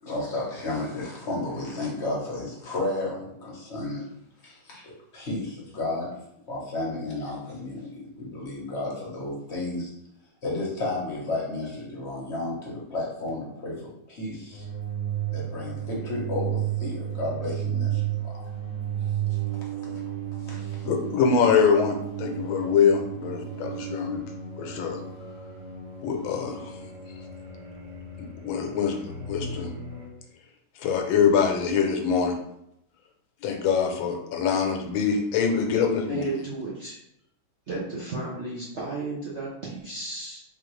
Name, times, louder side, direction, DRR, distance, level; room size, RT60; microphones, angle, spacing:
voice 1, 0.0-4.0 4.4-4.8 5.1-6.1 6.5-9.9 10.4-14.6 15.3-18.5 20.4-20.9, left 2 dB, 40° left, -4 dB, 1.1 m, -32 dB
sound 1, 14.5-30.1, right 9 dB, 85° right, 1.7 m, -33 dB
voice 2, 20.8-24.2 24.6-25.0 26.0-26.8 28.2-29.7 30.8-32.3 33.4-36.2, left 6 dB, 80° left, 3 dB, 1.4 m, -24 dB
voice 3, 36.1-37.0 37.7-40.4, right 2 dB, 65° right, -6 dB, 0.7 m, -33 dB
4.0 x 3.2 x 3.1 m, 0.77 s
omnidirectional pair, 2.2 m